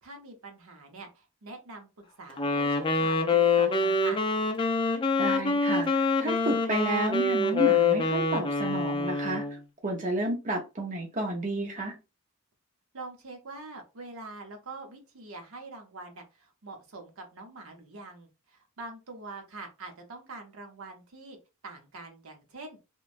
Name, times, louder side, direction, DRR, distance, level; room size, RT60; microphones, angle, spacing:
voice 1, 0.0-4.2 12.9-21.4 21.6-22.8, right 3 dB, 70° right, 0.8 m, -44 dB
Wind instrument woodwind instrument, 2.4-9.6, left 3 dB, 25° left, 0.4 m, -25 dB
voice 2, 5.2-11.9, right 1 dB, 40° right, 0.6 m, -31 dB
3.0 x 2.2 x 2.5 m
head